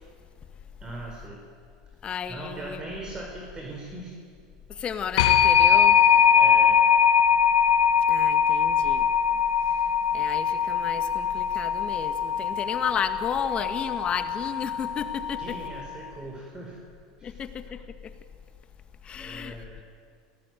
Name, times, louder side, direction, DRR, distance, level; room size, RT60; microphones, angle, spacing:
voice 1, 0.8-1.4 2.3-4.2 6.3-6.8 15.4-16.8 17.2-17.4 19.2-19.8, right 2 dB, 25° right, 0 dB, 4.7 m, -39 dB
voice 2, 2.0-2.8 4.7-6.0 8.1-9.1 10.1-15.6 17.2-18.1 19.0-19.6, left 7 dB, 30° left, 9 dB, 2.0 m, -33 dB
sound 1, 5.2-15.8, left 8 dB, 75° left, 2.5 m, -22 dB
29.0 x 18.5 x 9.4 m, 2.2 s
supercardioid pair, 105°, 3 cm